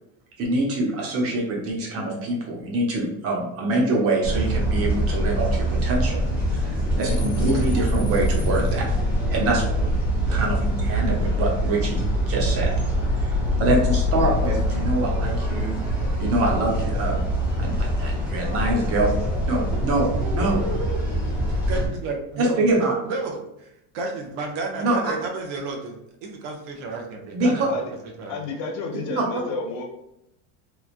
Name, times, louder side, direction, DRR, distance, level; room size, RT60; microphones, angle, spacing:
voice 1, 0.4-6.2 6.5-8.9 9.3-9.6 10.3-12.7 13.2-15.8 16.2-17.2 17.6-19.1 19.5-20.6 22.4-22.9 24.8-25.1 27.3-27.7, right 2 dB, 35° right, -1 dB, 0.7 m, -25 dB
sound 1, 4.2-21.9, equal, 5° right, 0.6 m, -24 dB
voice 2, 19.7-21.0 21.5-23.4 23.9-27.9 28.2-28.4, right 3 dB, 80° right, 1 dB, 0.8 m, -32 dB
voice 3, 28.3-29.9, left 3 dB, 45° left, 1 dB, 0.6 m, -31 dB
3.0 x 2.3 x 2.4 m, 0.82 s
cardioid pair, 160°, 39 cm